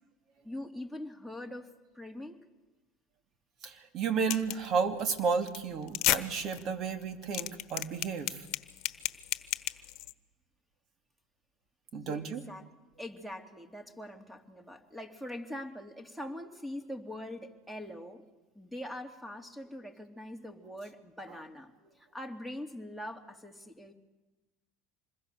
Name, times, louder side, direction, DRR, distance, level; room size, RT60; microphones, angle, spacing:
voice 1, 0.4-1.7 1.9-2.4 11.9-12.7 13.0-18.2 18.5-21.7 22.1-23.9, left 1 dB, 5° right, 5 dB, 3.0 m, -43 dB
voice 2, 3.6-8.4 11.9-12.4, right 5 dB, 50° right, 6 dB, 2.7 m, -32 dB
sound 1, 4.3-4.7 5.0-5.2 5.5-5.6 5.9-6.2 6.5-6.6 7.0-10.1, left 17 dB, 60° left, 1.2 m, -31 dB
26.5 x 21.5 x 6.9 m, 1.1 s
hypercardioid pair, 85°, 0 cm